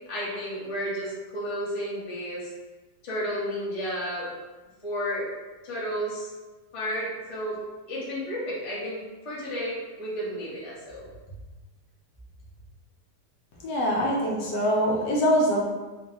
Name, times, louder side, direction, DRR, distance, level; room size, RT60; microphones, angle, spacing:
voice 1, 0.1-2.5 3.0-4.3 4.8-5.3 5.6-6.3 6.7-7.6 7.9-11.1, equal, 25° left, -8 dB, 0.7 m, -32 dB
voice 2, 13.6-15.6, equal, 75° left, -2 dB, 1.2 m, -23 dB
4.1 x 2.2 x 2.8 m, 1.2 s
omnidirectional pair, 1.9 m